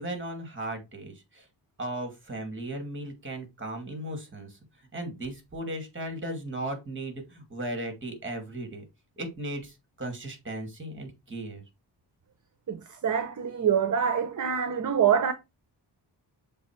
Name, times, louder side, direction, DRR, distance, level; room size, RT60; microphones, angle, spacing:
voice 1, 0.0-1.5 1.8-8.8 9.2-11.6, right 1 dB, 30° right, 2.3 m, -36 dB
voice 2, 12.7-15.3, right 8 dB, 45° right, 0.8 m, -25 dB
6.9 x 3.4 x 4.5 m
wide cardioid pair, 140°, 42 cm